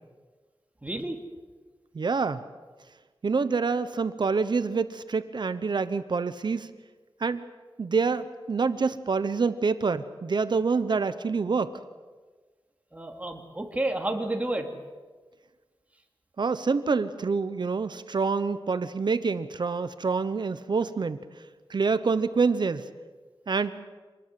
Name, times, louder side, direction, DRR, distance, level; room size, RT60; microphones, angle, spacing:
voice 1, 0.8-1.2 12.9-14.7, right 1 dB, 15° right, 3 dB, 2.8 m, -30 dB
voice 2, 1.9-2.4 3.2-6.7 7.2-7.4 7.8-11.7 16.4-21.2 21.7-22.9 23.5-23.7, right 4 dB, 55° right, 12 dB, 1.0 m, -26 dB
26.0 x 20.0 x 7.8 m, 1.3 s
wide cardioid pair, 110°, 9 cm